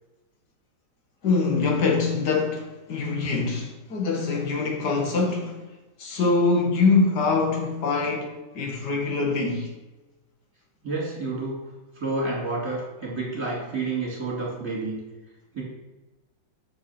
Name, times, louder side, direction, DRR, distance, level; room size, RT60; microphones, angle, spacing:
voice 1, 1.2-5.6 6.0-9.7, left 4 dB, 60° left, 1.7 m, -24 dB
voice 2, 10.8-11.5 11.9-15.0 15.5-15.6, right 3 dB, 15° right, 2.3 m, -29 dB
6.7 x 4.8 x 5.7 m
omnidirectional pair, 2.1 m